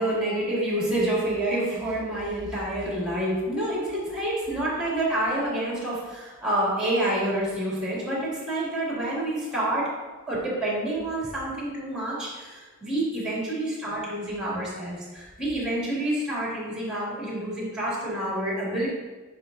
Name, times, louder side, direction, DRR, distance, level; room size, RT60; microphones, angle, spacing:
voice 1, 0.0-9.9 10.3-18.9, right 1 dB, 5° right, -6 dB, 2.3 m, -28 dB
9.4 x 5.7 x 2.6 m, 1.3 s
head